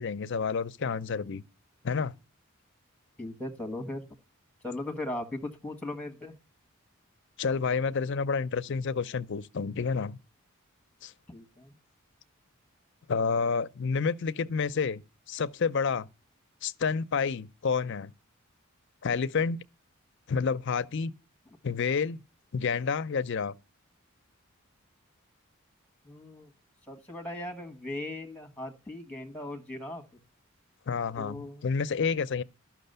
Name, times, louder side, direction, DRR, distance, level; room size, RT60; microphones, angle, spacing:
voice 1, 0.0-1.4 1.8-2.2 7.4-10.2 11.0-11.1 13.1-15.0 15.3-16.1 16.6-18.1 19.0-19.6 20.3-21.1 21.6-22.2 22.5-23.5 30.9-32.4, left 5 dB, 55° left, 0.5 m, -29 dB
voice 2, 3.2-4.0 4.6-6.4 11.3-11.7 26.0-26.5 26.9-30.0 31.2-31.6, left 1 dB, 5° left, 1.5 m, -38 dB
12.5 x 6.1 x 6.7 m
head